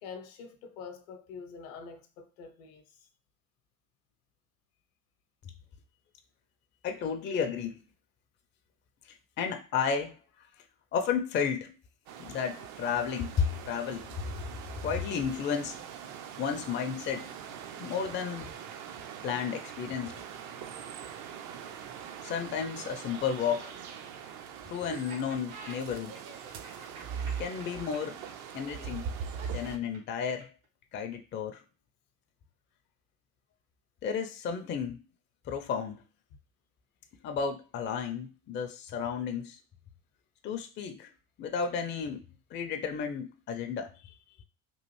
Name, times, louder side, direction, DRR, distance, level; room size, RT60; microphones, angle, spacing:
voice 1, 0.0-2.8, left 5 dB, 65° left, 0.7 m, -45 dB
voice 2, 6.8-7.8 9.0-10.5 10.9-11.7 12.2-14.3 14.8-15.8 16.4-17.3 17.8-18.5 19.2-20.2 22.2-23.7 24.6-26.1 27.4-28.2 28.5-29.1 29.5-30.5 30.9-31.6 34.0-35.0 35.5-36.0 37.2-39.6 40.4-41.1 41.4-42.2 42.5-43.9, left 7 dB, 30° left, 0.4 m, -32 dB
sound 1, 12.1-29.8, right 7 dB, 50° right, 0.5 m, -42 dB
Laughter, 24.9-30.7, right 4 dB, 75° right, 1.3 m, -48 dB
3.1 x 2.4 x 3.0 m
hypercardioid pair, 70°, 39 cm